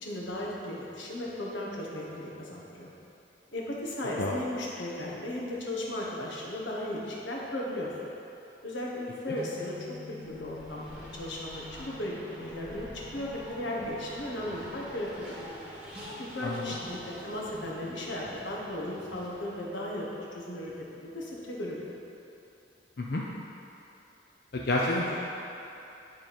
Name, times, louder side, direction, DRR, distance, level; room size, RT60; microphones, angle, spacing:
voice 1, 0.0-2.9 3.5-7.9 8.6-9.7 10.1-12.9 13.1-15.5 16.2-17.0 17.2-21.9, left 1 dB, 90° left, -4 dB, 1.4 m, -36 dB
sound 1, 9.4-21.4, left 3 dB, 30° right, 1.0 m, -52 dB
Race car auto racing, 10.2-19.8, equal, 5° right, 1.7 m, -46 dB
voice 2, 16.4-16.8 23.0-23.2 24.5-25.3, left 2 dB, 60° left, -4 dB, 0.6 m, -29 dB
10.0 x 3.8 x 5.2 m, 2.9 s
head